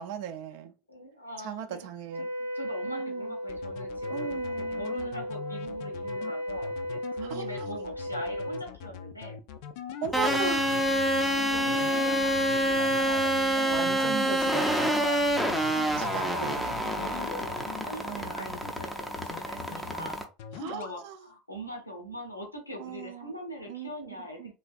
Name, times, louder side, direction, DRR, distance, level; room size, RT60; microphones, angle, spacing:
voice 1, 0.0-0.7 1.4-2.3 2.9-3.3 4.1-5.2 7.3-7.7 10.0-11.0 13.7-15.0 16.0-17.1 18.0-18.6 20.6-21.2 22.8-23.3 23.7-23.9 24.4-24.5, right 8 dB, 50° right, 0.4 m, -37 dB
voice 2, 0.9-1.8 2.2-9.4 11.3-15.3 15.8-20.3 20.7-24.5, equal, 85° left, 0.8 m, -42 dB
Wind instrument woodwind instrument, 2.1-8.7, left 1 dB, 85° right, 0.7 m, -35 dB
sound 1, 3.5-17.8 18.2-18.9 19.2-20.1 20.4-20.9, left 8 dB, 50° left, 0.4 m, -42 dB
sound 2, 10.1-20.2, equal, ahead, 0.5 m, -27 dB
3.2 x 2.4 x 2.3 m
figure-of-eight pair, 80°, 0 cm